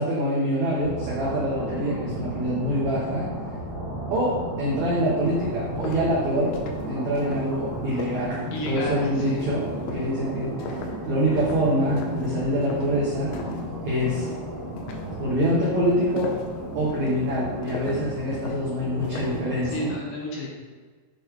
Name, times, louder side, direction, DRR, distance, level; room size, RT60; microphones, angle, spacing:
voice 1, 0.0-3.3 4.1-6.6 6.9-13.3 13.8-14.3 15.2-16.3 16.7-19.9, equal, 85° right, -6 dB, 1.6 m, -25 dB
sound 1, 0.8-19.9, right 1 dB, 65° right, 1.5 m, -34 dB
sound 2, 4.8-4.9 5.3-13.7 14.0-14.4 14.8-19.5, left 6 dB, 90° left, 2.9 m, -40 dB
voice 2, 8.5-9.5 19.6-20.5, equal, 75° left, -3 dB, 3.2 m, -32 dB
7.9 x 4.7 x 3.3 m, 1.5 s
omnidirectional pair, 5.1 m